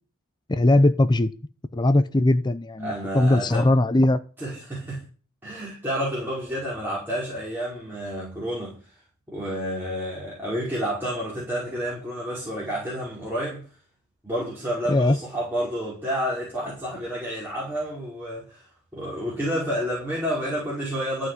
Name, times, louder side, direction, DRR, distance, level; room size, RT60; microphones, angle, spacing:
voice 1, 0.5-1.3 1.7-4.2 14.9-15.2, left 1 dB, 20° left, 0.6 m, -20 dB
voice 2, 2.8-3.7 4.4-5.0 5.4-9.0 9.3-13.7 14.2-21.3, equal, 10° right, 5.3 m, -30 dB
14.5 x 5.8 x 9.6 m
head